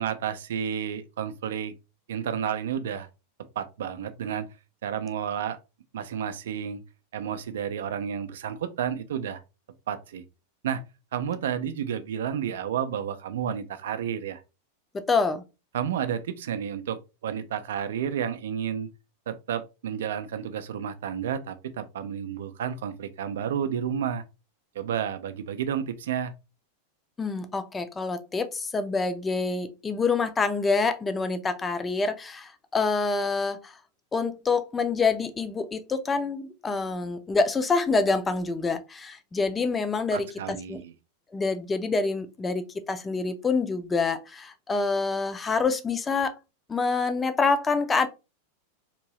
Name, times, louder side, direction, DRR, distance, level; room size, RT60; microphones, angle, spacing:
voice 1, 0.0-1.7 2.1-3.1 3.6-4.5 4.8-5.6 5.9-6.8 7.1-9.4 9.9-10.2 10.6-10.8 11.1-14.4 15.7-18.9 19.3-24.2 24.8-26.3 40.1-40.9, right 8 dB, 60° right, 0.4 m, -31 dB
voice 2, 14.9-15.4 27.2-33.7 34.1-40.8 41.3-46.4 46.7-48.1, left 4 dB, 15° left, 0.5 m, -26 dB
3.7 x 2.6 x 3.0 m
figure-of-eight pair, 90°, 0 cm